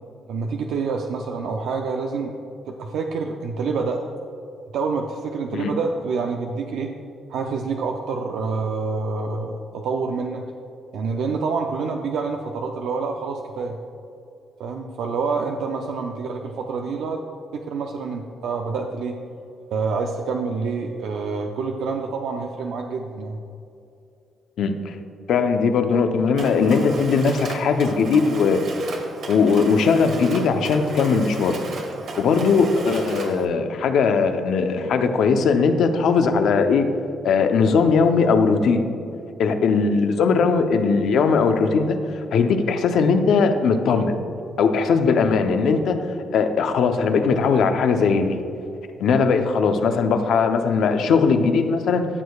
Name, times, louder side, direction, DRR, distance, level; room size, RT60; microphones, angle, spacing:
voice 1, 0.3-2.3 2.6-4.0 4.7-6.9 7.3-10.4 10.9-13.8 14.6-17.2 17.5-19.2 19.7-23.4, right 4 dB, 80° right, 2 dB, 0.5 m, -27 dB
voice 2, 24.6-24.9 25.3-28.6 29.3-31.6 32.2-36.9 37.2-38.9 39.4-44.2 44.6-46.1 46.3-48.4 49.0-52.1, left 5 dB, 75° left, 6 dB, 0.7 m, -19 dB
Mechanisms, 26.4-33.5, right 3 dB, 65° right, 1.2 m, -35 dB
13.5 x 6.5 x 2.3 m, 2.7 s
cardioid pair, 90°, 0 cm